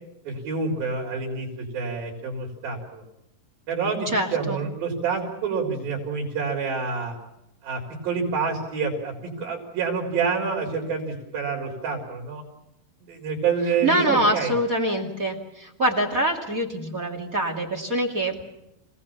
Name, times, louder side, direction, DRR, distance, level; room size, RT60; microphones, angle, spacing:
voice 1, 0.3-3.0 3.7-7.1 7.6-12.4 13.0-14.5, right 5 dB, 65° right, 0 dB, 5.5 m, -28 dB
voice 2, 4.1-4.6 13.8-18.3, right 1 dB, 25° right, 3 dB, 2.3 m, -24 dB
27.5 x 18.0 x 7.2 m, 0.87 s
omnidirectional pair, 4.6 m